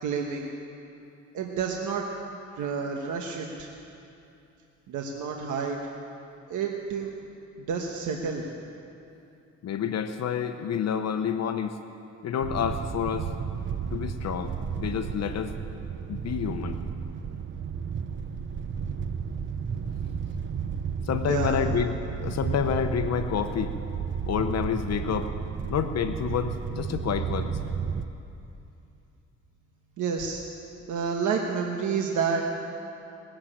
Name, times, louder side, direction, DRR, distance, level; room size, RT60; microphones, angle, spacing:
voice 1, 0.0-0.5 1.3-2.1 2.6-3.7 4.9-5.8 6.5-7.1 7.7-8.4 21.3-21.6 30.0-30.4 30.9-32.4, right 6 dB, 80° right, 1 dB, 1.3 m, -29 dB
voice 2, 9.6-11.8 12.2-13.3 13.9-15.5 16.1-16.8 21.0-23.7 24.3-25.3 25.7-27.6, left 8 dB, 60° left, 8 dB, 0.9 m, -29 dB
sound 1, 12.4-28.0, right 6 dB, 40° right, 0.8 m, -33 dB
21.0 x 7.6 x 8.7 m, 2.7 s
cardioid pair, 90°, 30 cm